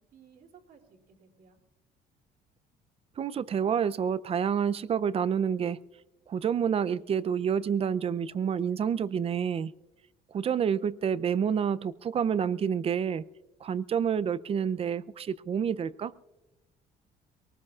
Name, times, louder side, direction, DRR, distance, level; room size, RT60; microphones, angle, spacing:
voice 1, 0.1-1.6, right 6 dB, 60° right, 2.8 m, -57 dB
voice 2, 3.2-5.8 6.3-9.7 10.3-13.2 13.6-16.1, right 7 dB, 35° right, 0.5 m, -28 dB
23.0 x 19.0 x 2.4 m
cardioid pair, 110°, 17 cm